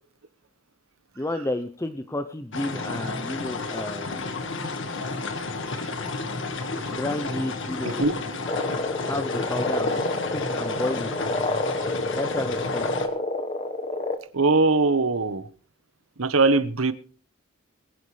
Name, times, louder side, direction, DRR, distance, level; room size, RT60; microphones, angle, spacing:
voice 1, 1.2-4.4 6.9-8.0 9.0-10.0 10.3-11.1 12.2-12.8, left 1 dB, 15° left, 0.7 m, -31 dB
sound 1, 2.5-13.1, left 3 dB, 60° left, 1.8 m, -32 dB
sound 2, 8.5-14.2, left 2 dB, 35° left, 1.4 m, -28 dB
voice 2, 14.3-15.5 16.2-16.9, right 3 dB, 75° right, 1.1 m, -21 dB
22.0 x 11.0 x 3.3 m
head